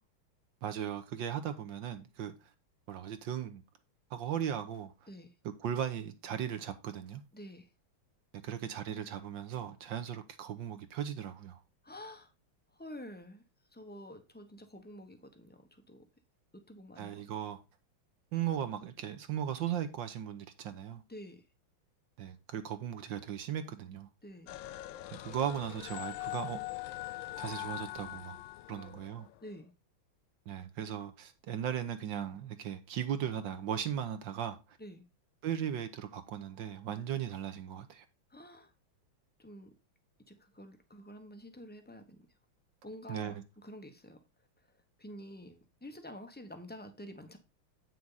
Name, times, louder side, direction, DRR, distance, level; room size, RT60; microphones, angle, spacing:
voice 1, 0.6-2.3 2.9-3.6 4.1-4.9 5.6-7.2 8.4-11.6 17.0-17.6 18.3-21.0 22.2-24.1 25.2-26.6 27.4-28.4 28.7-29.3 30.5-34.6 35.4-38.0 43.1-43.4, right 9 dB, 70° right, 1.5 m, -37 dB
voice 2, 7.3-7.7 11.8-12.3 12.7-13.4 13.7-16.0 16.5-17.1 21.1-21.4 24.2-24.6 28.7-28.9 29.4-29.7 34.8-35.0 38.3-38.7 39.4-39.7 40.3-42.2 42.8-44.2 45.0-47.4, equal, 10° left, 0.5 m, -49 dB
sound 1, 24.5-29.3, left 17 dB, 75° left, 1.3 m, -42 dB
8.5 x 6.2 x 3.9 m
omnidirectional pair, 2.3 m